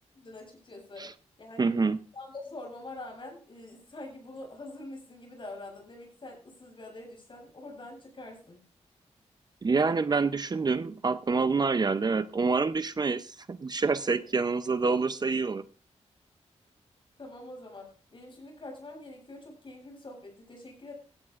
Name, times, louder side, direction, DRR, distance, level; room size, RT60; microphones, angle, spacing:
voice 1, 0.1-1.1 1.4-1.8 2.1-8.6 14.0-14.3 17.2-20.9, left 2 dB, 45° left, 7.9 m, -45 dB
voice 2, 1.6-2.0 9.6-15.6, right 4 dB, 35° right, 0.6 m, -27 dB
17.0 x 15.0 x 2.5 m
wide cardioid pair, 105°, 12 cm